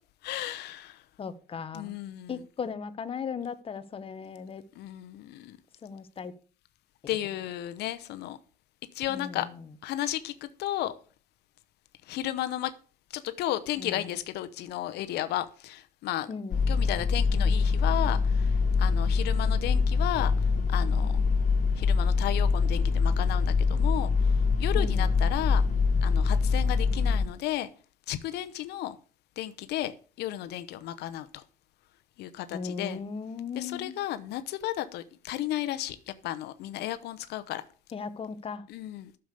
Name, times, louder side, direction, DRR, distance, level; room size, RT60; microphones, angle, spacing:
voice 1, 0.2-1.0 1.7-2.4 4.8-5.6 7.1-8.4 8.9-9.5 9.8-10.9 12.1-12.7 13.1-16.3 16.7-18.5 18.8-20.3 20.7-21.1 21.8-24.1 24.6-25.6 26.0-27.7 28.1-28.9 29.4-29.9 30.2-31.4 32.2-33.0 33.5-36.0 36.2-37.6 38.7-39.1, left 13 dB, 80° left, 0.8 m, -33 dB
voice 2, 1.2-1.9 2.3-4.6 5.8-6.3 9.1-9.5 13.8-14.1 16.3-16.6 24.7-25.1 32.5-34.0 37.9-38.6, left 5 dB, 35° left, 1.0 m, -37 dB
sound 1, 16.5-27.2, left 4 dB, 50° left, 2.9 m, -24 dB
10.0 x 6.9 x 6.6 m
cardioid pair, 110°, 17 cm